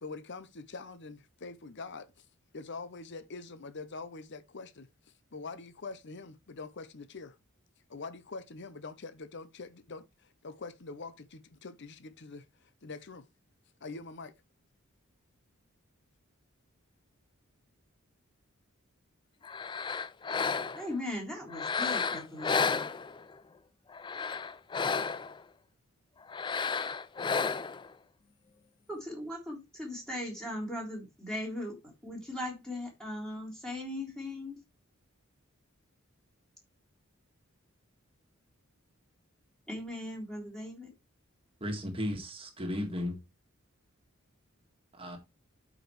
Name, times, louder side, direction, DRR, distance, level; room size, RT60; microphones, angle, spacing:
voice 1, 0.0-2.2 2.5-4.9 5.3-7.3 7.9-12.4 12.8-13.2 13.8-14.3, left 3 dB, 55° left, 0.8 m, -44 dB
sound 1, 19.4-21.0 21.5-23.4 23.9-25.4 26.3-27.9, left 5 dB, 20° left, 0.3 m, -32 dB
voice 2, 20.7-22.9 28.9-31.8 32.0-34.6 39.7-40.9, left 1 dB, 5° left, 3.7 m, -38 dB
voice 3, 41.6-43.2 44.9-45.2, left 1 dB, 25° right, 1.8 m, -35 dB
12.0 x 5.1 x 3.2 m
head